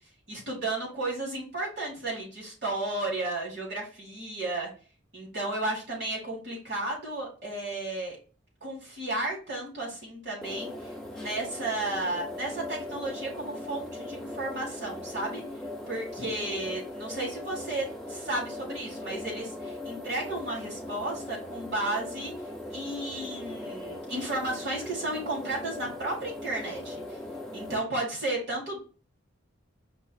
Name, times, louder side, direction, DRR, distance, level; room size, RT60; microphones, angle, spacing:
voice 1, 0.3-4.7 5.1-8.2 8.6-15.4 15.9-22.3 22.7-27.2 27.5-28.8, right 2 dB, 55° right, -3 dB, 2.5 m, -33 dB
sound 1, 10.4-27.8, left 1 dB, 5° left, 0.5 m, -39 dB
5.3 x 2.1 x 4.6 m, 0.36 s
head